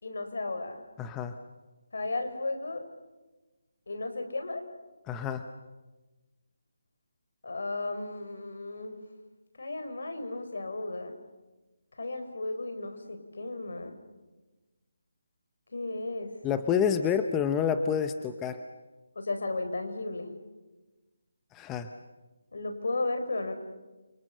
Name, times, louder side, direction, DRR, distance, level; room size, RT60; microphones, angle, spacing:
voice 1, 0.0-0.8 1.9-2.9 3.9-4.6 7.4-9.0 9.6-11.1 12.0-13.9 15.7-16.4 19.1-20.3 22.5-23.5, left 2 dB, 70° left, 7 dB, 4.7 m, -34 dB
voice 2, 1.0-1.3 5.1-5.4 16.4-18.6 21.5-21.9, left 7 dB, 10° left, 9 dB, 0.7 m, -28 dB
29.0 x 25.0 x 6.7 m, 1.2 s
figure-of-eight pair, 170°, 0 cm